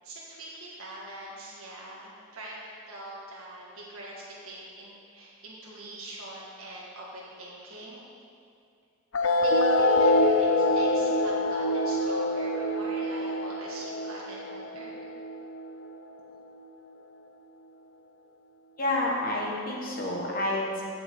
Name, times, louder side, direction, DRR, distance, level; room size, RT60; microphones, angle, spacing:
voice 1, 0.0-8.1 9.2-14.9, right 1 dB, 75° right, -5 dB, 1.6 m, -43 dB
sound 1, 9.1-16.1, left 1 dB, 65° left, 0.6 m, -25 dB
voice 2, 18.8-20.8, left 1 dB, 40° left, -2 dB, 1.4 m, -29 dB
15.0 x 6.2 x 3.7 m, 2.4 s
head